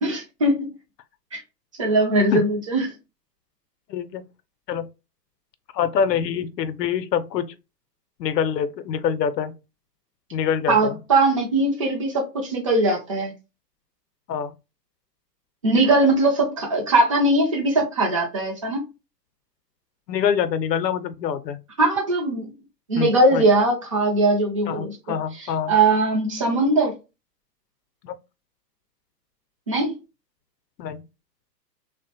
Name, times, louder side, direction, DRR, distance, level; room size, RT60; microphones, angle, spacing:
voice 1, 0.0-0.7 1.3-1.4 1.8-2.9 10.7-13.3 15.6-18.9 21.8-22.5 22.9-24.9 25.4-27.0 29.7-30.0, right 2 dB, 25° right, 0.3 m, -20 dB
voice 2, 3.9-4.2 4.7-4.9 5.7-7.5 8.2-9.5 10.3-11.0 14.3-14.5 20.1-21.6 23.0-23.5 24.7-25.7 28.0-28.2 30.8-31.0, left 7 dB, 80° left, 0.6 m, -25 dB
2.8 x 2.1 x 2.7 m
hypercardioid pair, 125°, 49 cm